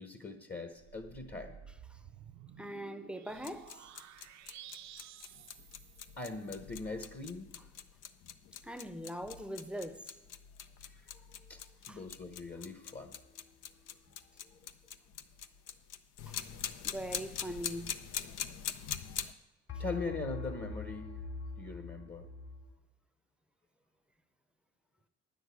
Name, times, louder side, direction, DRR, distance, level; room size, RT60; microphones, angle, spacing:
voice 1, 0.0-1.5 5.0-5.5 6.2-7.7 10.8-13.1 19.8-21.1 21.6-22.3, left 3 dB, 35° left, 1.0 m, -42 dB
sound 1, 0.8-6.5, right 10 dB, 65° right, 0.6 m, -53 dB
voice 2, 2.6-3.8 8.6-10.1 11.9-12.0 16.3-16.4 16.8-18.0, equal, 5° right, 0.6 m, -41 dB
gear.test.inside, 3.3-19.3, left 9 dB, 85° left, 0.7 m, -43 dB
sound 2, 12.3-13.2 19.7-22.7, left 3 dB, 55° left, 2.9 m, -44 dB
10.0 x 6.4 x 8.3 m
cardioid pair, 90°, 30 cm